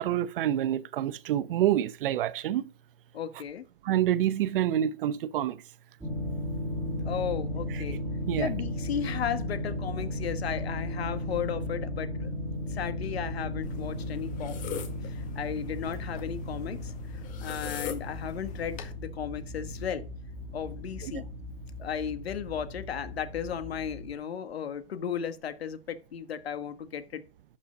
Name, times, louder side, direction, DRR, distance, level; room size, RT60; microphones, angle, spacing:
voice 1, 0.0-2.7 3.8-5.6 7.7-7.8 8.3-8.5 21.0-21.2, right 11 dB, 60° right, 0.8 m, -27 dB
voice 2, 3.1-3.7 7.0-8.0 8.4-12.4 12.7-16.9 17.4-20.1 20.5-21.3 21.8-27.2, left 8 dB, 85° left, 1.6 m, -35 dB
sound 1, 6.0-24.1, left 1 dB, 5° right, 2.6 m, -36 dB
sound 2, 13.6-18.9, left 7 dB, 25° left, 1.8 m, -42 dB
11.5 x 5.6 x 5.1 m
hypercardioid pair, 140°, 30 cm